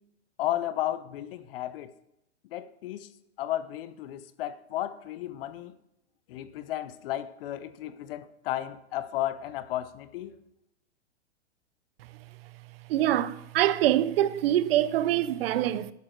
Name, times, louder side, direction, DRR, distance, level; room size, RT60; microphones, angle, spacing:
voice 1, 0.4-1.9 2.4-3.1 3.4-5.8 6.3-10.4, left 13 dB, 55° left, 0.9 m, -33 dB
voice 2, 12.9-15.9, right 12 dB, 55° right, 0.7 m, -24 dB
12.5 x 8.5 x 4.5 m
hypercardioid pair, 125°, 35 cm